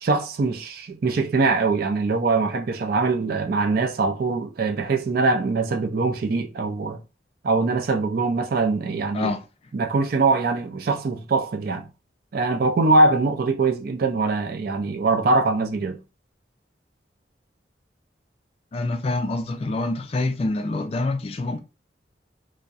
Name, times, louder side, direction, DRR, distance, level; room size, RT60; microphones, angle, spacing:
voice 1, 0.0-7.0 7.4-9.3 9.7-11.8 12.3-16.0, right 3 dB, 55° right, 0.4 m, -22 dB
voice 2, 18.7-21.6, left 2 dB, 35° left, 0.3 m, -26 dB
2.6 x 2.0 x 2.3 m
head